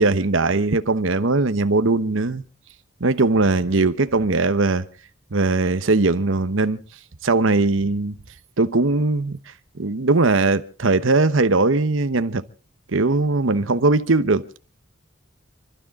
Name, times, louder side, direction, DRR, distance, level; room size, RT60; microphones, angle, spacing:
voice 1, 0.0-2.4 3.0-4.9 5.3-6.8 7.2-8.2 8.6-9.4 9.8-12.4 12.9-14.6, right 3 dB, 70° right, 1.0 m, -20 dB
29.5 x 12.5 x 3.7 m
head